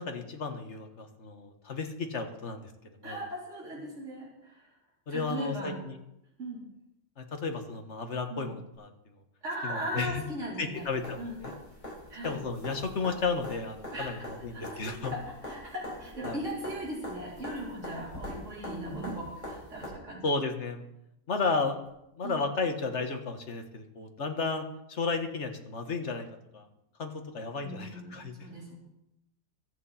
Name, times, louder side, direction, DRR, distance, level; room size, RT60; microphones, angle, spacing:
voice 1, 0.0-3.2 5.1-5.9 7.2-8.9 9.6-10.2 10.6-11.5 12.2-15.1 16.2-16.4 20.2-20.9 21.3-21.8 22.2-26.3 26.5-26.7 27.0-28.5, left 4 dB, 50° left, 5 dB, 1.7 m, -33 dB
voice 2, 3.0-4.7 5.1-5.8 6.4-6.6 8.3-8.5 9.4-10.9 11.2-11.4 12.1-12.4 13.9-14.3 14.5-20.2 22.2-22.4 27.6-28.8, right 1 dB, 50° right, -4 dB, 4.2 m, -38 dB
sound 1, 10.7-19.9 21.9-22.0, left 1 dB, 30° left, 5.9 m, -43 dB
23.5 x 8.2 x 4.3 m, 0.84 s
omnidirectional pair, 1.6 m